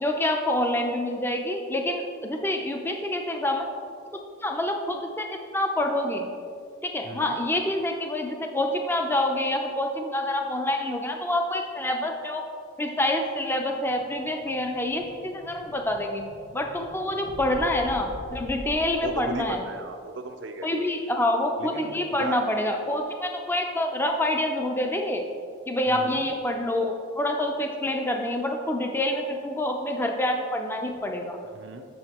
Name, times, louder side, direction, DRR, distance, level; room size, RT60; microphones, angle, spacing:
voice 1, 0.0-3.7 4.4-6.3 6.8-12.4 12.8-19.6 20.6-25.2 25.7-31.4, left 1 dB, 10° left, 3 dB, 0.5 m, -27 dB
voice 2, 7.0-7.4 19.0-20.7 21.6-22.4 25.9-26.2 31.5-31.8, right 3 dB, 70° right, 6 dB, 0.6 m, -37 dB
Explosion, 13.6-19.6, equal, 45° left, 0.8 m, -43 dB
7.8 x 7.0 x 2.9 m, 2.2 s
head